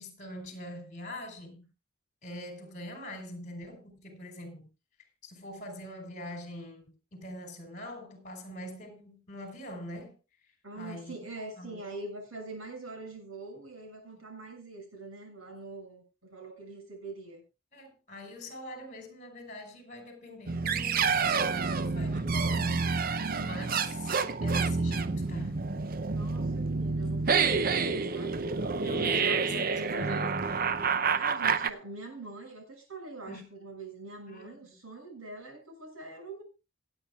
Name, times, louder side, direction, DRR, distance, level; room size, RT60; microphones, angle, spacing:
voice 1, 0.0-1.7 2.2-4.7 5.2-6.8 7.1-10.2 10.7-11.1 11.5-11.9 17.7-24.2 24.4-25.6 28.8-30.3 33.3-33.5 34.3-34.8, left 1 dB, 35° left, 4.4 m, -43 dB
voice 2, 10.6-17.4 23.1-23.7 26.0-28.5 28.9-30.4 31.1-36.4, right 3 dB, 80° right, 7.1 m, -44 dB
sound 1, 20.5-31.7, right 5 dB, 45° right, 0.7 m, -28 dB
26.0 x 8.8 x 2.4 m
head